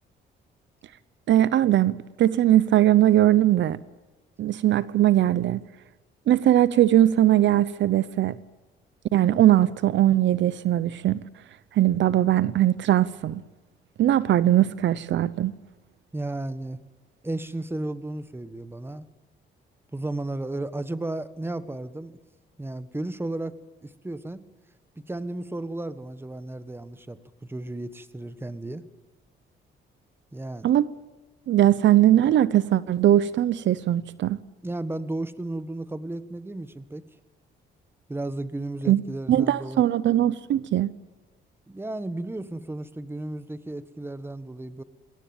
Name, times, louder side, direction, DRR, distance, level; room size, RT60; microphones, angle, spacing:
voice 1, 1.3-3.8 4.4-5.6 6.3-8.4 9.1-11.2 11.7-13.4 14.0-15.5 30.6-30.9 31.5-34.4 38.9-39.0 39.3-40.9, right 12 dB, 70° right, 0.7 m, -20 dB
voice 2, 16.1-16.8 17.2-19.0 19.9-22.1 22.6-23.5 23.8-24.4 25.1-27.2 27.5-28.8 30.3-30.7 34.6-37.0 38.1-39.8 41.7-44.8, right 2 dB, 10° right, 1.4 m, -33 dB
21.5 x 17.5 x 9.0 m
cardioid pair, 90°, 20 cm